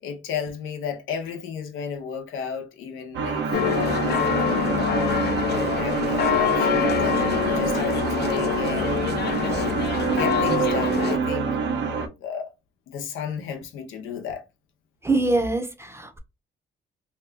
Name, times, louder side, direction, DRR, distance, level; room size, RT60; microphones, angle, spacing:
voice 1, 0.0-5.0 5.4-9.0 9.4-11.5 12.2-12.5 12.9-14.4, left 7 dB, 90° left, 0.7 m, -33 dB
sound 1, 3.1-12.1, right 6 dB, 70° right, 0.6 m, -26 dB
sound 2, 3.5-11.2, left 9 dB, 55° left, 0.5 m, -25 dB
voice 2, 15.0-16.2, right 2 dB, 15° right, 0.6 m, -24 dB
2.9 x 2.3 x 3.3 m
cardioid pair, 90°, 20 cm